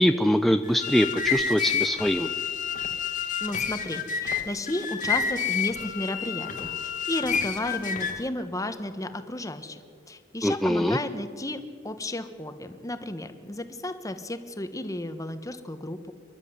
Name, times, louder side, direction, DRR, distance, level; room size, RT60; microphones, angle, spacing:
voice 1, 0.0-2.3 10.4-11.0, equal, ahead, 8 dB, 0.5 m, -23 dB
sound 1, 0.6-8.3, left 6 dB, 40° left, 1.5 m, -29 dB
voice 2, 3.4-16.1, left 1 dB, 15° left, 9 dB, 1.3 m, -33 dB
27.5 x 12.0 x 9.5 m, 2.1 s
head